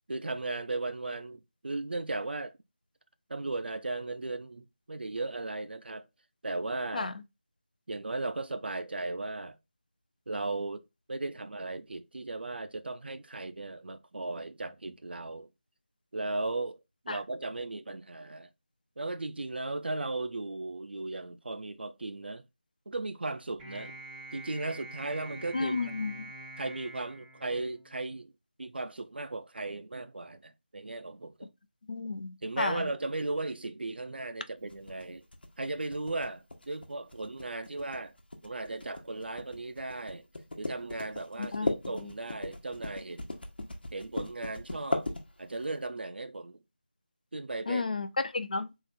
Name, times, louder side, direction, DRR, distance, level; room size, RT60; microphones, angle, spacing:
voice 1, 0.1-2.5 3.3-6.0 6.4-7.1 7.9-9.5 10.3-10.8 11.1-15.5 16.1-16.8 17.0-18.5 19.0-22.4 22.9-23.9 24.3-25.9 26.6-28.3 28.6-31.5 32.4-35.2 35.6-38.1 38.4-40.3 40.6-43.3 43.9-45.1 45.4-46.6 47.3-47.8, right 2 dB, 70° right, 0.6 m, -36 dB
sound 1, 23.6-28.1, right 2 dB, 5° right, 0.7 m, -46 dB
voice 2, 25.5-26.3 31.9-32.8 41.4-42.1 47.7-48.7, left 3 dB, 50° left, 0.5 m, -32 dB
sound 2, 34.7-45.7, left 2 dB, 65° left, 1.1 m, -37 dB
4.0 x 2.5 x 4.0 m
figure-of-eight pair, 170°, 6 cm